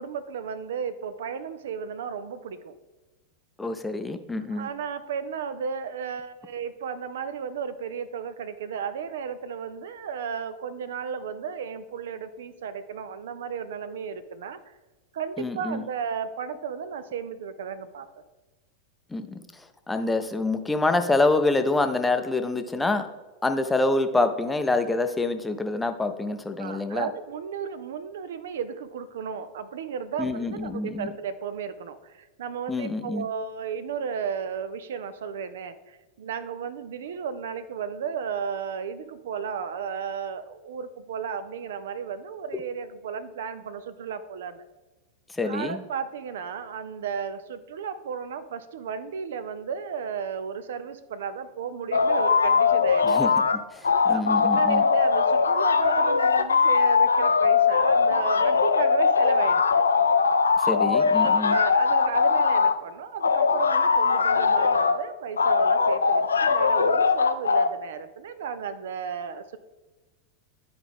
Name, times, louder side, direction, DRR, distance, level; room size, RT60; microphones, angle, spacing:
voice 1, 0.0-2.7 4.5-14.6 15.1-18.1 26.6-44.7 45.4-53.1 54.1-59.9 61.5-69.6, right 6 dB, 60° right, 13 dB, 0.4 m, -34 dB
voice 2, 3.6-4.7 15.4-15.8 19.1-19.4 19.9-23.1 23.4-27.1 30.2-31.1 32.7-33.3 45.3-45.8 53.0-54.8 60.6-61.6, left 2 dB, 10° left, 7 dB, 0.5 m, -26 dB
sound 1, 51.9-53.6 53.8-62.8 63.2-65.0 65.4-67.7, left 5 dB, 75° left, 0.3 m, -21 dB
10.5 x 4.7 x 3.6 m, 1.2 s
figure-of-eight pair, 90°, 0 cm